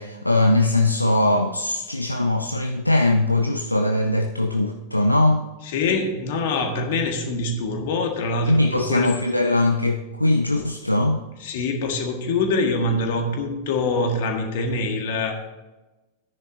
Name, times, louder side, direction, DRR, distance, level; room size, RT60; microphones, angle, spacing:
voice 1, 0.0-5.4 8.5-11.2, left 2 dB, 85° left, 5 dB, 0.5 m, -21 dB
voice 2, 5.7-9.2 11.4-15.3, left 3 dB, 55° left, 4 dB, 1.7 m, -24 dB
14.0 x 9.8 x 2.7 m, 1.1 s
figure-of-eight pair, 90°, 0 cm